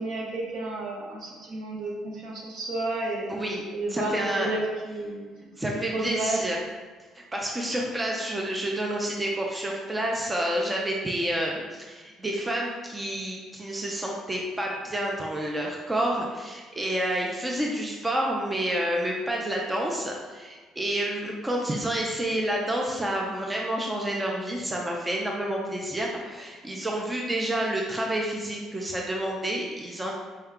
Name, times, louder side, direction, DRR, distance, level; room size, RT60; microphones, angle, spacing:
voice 1, 0.0-3.3 3.7-5.2 5.9-6.5, right 2 dB, 60° right, -2 dB, 0.9 m, -31 dB
voice 2, 3.3-3.6 3.9-4.5 5.6-6.6 7.3-30.1, right 1 dB, 10° right, -1 dB, 0.4 m, -29 dB
4.4 x 2.2 x 3.6 m, 1.4 s
cardioid pair, 140°, 0 cm